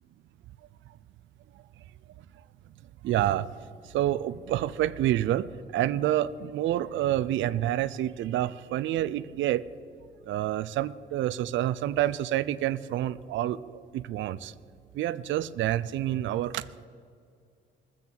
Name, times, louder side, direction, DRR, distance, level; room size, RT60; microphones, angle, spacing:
voice 1, 3.0-3.5 3.8-9.6 10.3-14.5 14.9-16.9, right 13 dB, 75° right, 15 dB, 0.4 m, -28 dB
21.0 x 7.6 x 3.9 m, 2.3 s
cardioid pair, 90°, 20 cm